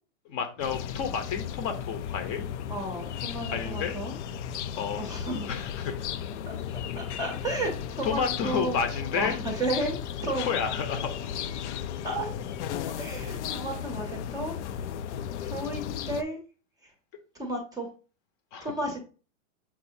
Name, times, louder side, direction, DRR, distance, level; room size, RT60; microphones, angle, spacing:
voice 1, 0.2-2.4 3.5-4.0 4.8-5.0 5.5-6.1 8.0-9.4 10.5-11.4 18.5-18.7, left 6 dB, 30° left, 6 dB, 0.8 m, -31 dB
sound 1, 0.6-16.2, left 9 dB, 60° left, 0.5 m, -35 dB
voice 2, 2.7-4.2 5.0-5.5 6.4-6.6 7.0-8.8 9.1-10.0 10.2-10.5 12.0-12.3 12.9-14.8 15.4-16.4 16.8-16.9 17.3-17.9 18.6-19.0, right 1 dB, 10° right, 1 dB, 0.7 m, -33 dB
7.1 x 2.7 x 2.7 m, 0.35 s
supercardioid pair, 150°, 40 cm